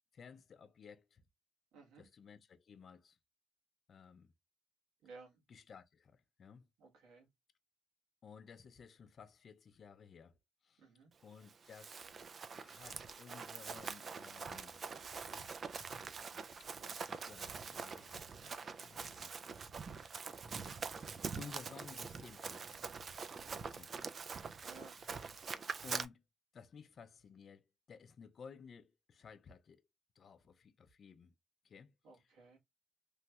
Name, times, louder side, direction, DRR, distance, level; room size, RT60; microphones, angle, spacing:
voice 1, 0.1-1.2 2.0-3.2 3.9-4.3 5.5-6.7 8.2-10.4 10.6-10.9 11.2-12.1 12.6-14.8 16.6-19.3 20.1-20.5 21.4-22.9 23.7-23.9 25.0-25.3 25.8-26.2 26.5-29.9 30.2-31.3 31.6-32.2, left 6 dB, 50° left, 0.4 m, -56 dB
voice 2, 1.7-2.1 5.0-5.4 6.8-7.3 10.8-11.1 23.3-23.6 24.6-25.0 32.0-32.6, right 3 dB, 90° right, 1.4 m, -57 dB
Run, 11.5-26.0, right 5 dB, 45° right, 0.3 m, -45 dB
3.1 x 2.2 x 2.7 m
cardioid pair, 90°, 0 cm